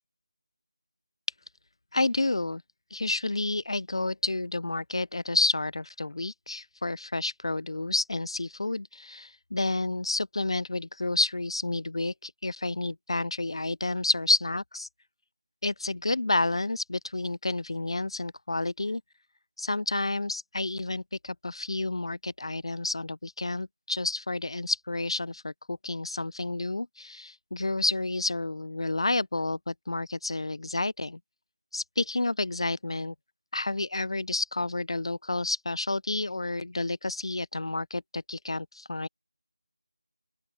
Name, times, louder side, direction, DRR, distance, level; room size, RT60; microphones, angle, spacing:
voice 1, 1.9-2.6 2.9-14.9 15.6-19.0 19.6-31.2 31.7-33.1 33.5-39.1, left 2 dB, 65° left, 0.4 m, -30 dB
open air
figure-of-eight pair, 180°, 3 cm